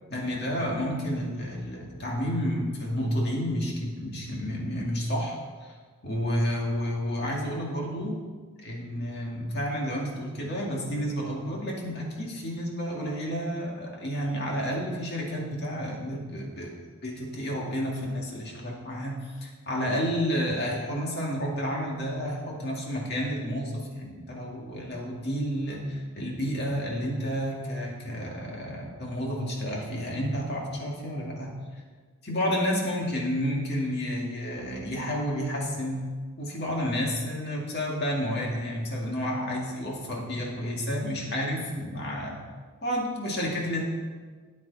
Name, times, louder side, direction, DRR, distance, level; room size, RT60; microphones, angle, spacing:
voice 1, 0.1-5.7 6.0-8.2 8.6-16.7 17.0-31.5 32.2-36.1 36.4-42.4 42.8-43.8, equal, 50° left, -2 dB, 2.3 m, -30 dB
13.0 x 8.8 x 4.1 m, 1.5 s
head